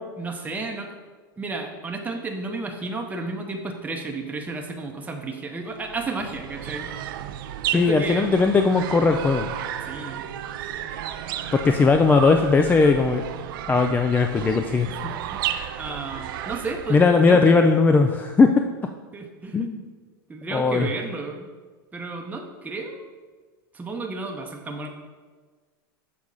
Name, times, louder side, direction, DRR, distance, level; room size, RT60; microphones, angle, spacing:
voice 1, 0.2-0.9 1.4-7.1 7.7-8.3 9.8-10.3 14.9-17.7 19.1-19.7 20.3-21.5 21.9-23.0 23.7-24.9, right 3 dB, 15° right, 2 dB, 0.7 m, -33 dB
sound 1, 5.7-17.3, right 10 dB, 65° right, 0.5 m, -33 dB
voice 2, 7.7-9.5 11.5-13.2 13.7-14.9 16.9-18.5 19.5-19.8 20.5-20.9, left 4 dB, 15° left, 5 dB, 0.3 m, -18 dB
6.5 x 3.5 x 5.3 m, 1.4 s
hypercardioid pair, 100°, 12 cm